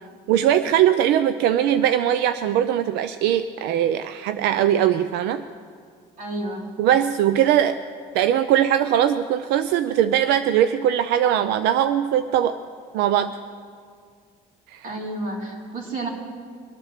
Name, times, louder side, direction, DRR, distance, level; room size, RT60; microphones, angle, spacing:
voice 1, 0.3-5.4 6.8-7.8 8.1-12.6 12.9-13.4 14.7-14.8, right 10 dB, 90° right, 11 dB, 0.5 m, -20 dB
voice 2, 6.2-6.7 14.8-16.1, right 2 dB, 55° right, -2 dB, 4.0 m, -31 dB
23.0 x 9.2 x 6.6 m, 2.1 s
cardioid pair, 110°, 17 cm